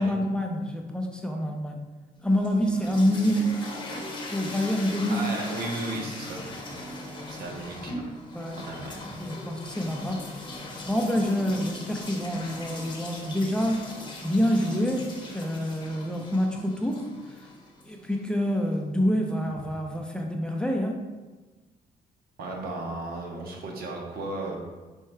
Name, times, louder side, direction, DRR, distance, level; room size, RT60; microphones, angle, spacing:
voice 1, 0.0-1.9 2.2-3.5 4.3-5.2 8.3-8.6 9.2-10.3 10.9-13.9 14.2-17.1 17.9-21.0, equal, 5° left, 1 dB, 0.5 m, -27 dB
sound 1, 2.2-18.3, left 1 dB, 30° left, 0.8 m, -39 dB
voice 2, 5.1-6.4 7.3-7.9 8.5-9.0 22.4-24.6, right 2 dB, 75° right, 0 dB, 0.9 m, -35 dB
4.7 x 4.4 x 2.2 m, 1.2 s
cardioid pair, 100°, 16 cm